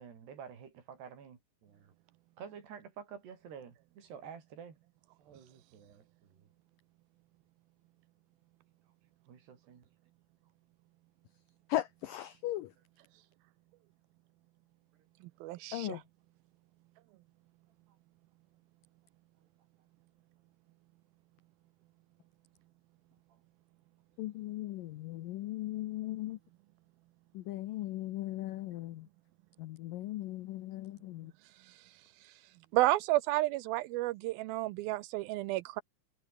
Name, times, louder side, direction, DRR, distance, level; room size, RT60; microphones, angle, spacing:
voice 1, 0.0-1.9 2.4-4.8 5.2-6.4 9.3-9.8, right 7 dB, 65° right, 5.8 m, -50 dB
voice 2, 11.7-12.7 15.7-16.0 24.2-26.4 27.3-29.1 29.6-31.3, left 15 dB, 85° left, 1.9 m, -38 dB
voice 3, 15.4-16.0 32.7-35.8, right 18 dB, 90° right, 2.1 m, -31 dB
omnidirectional pair, 5.1 m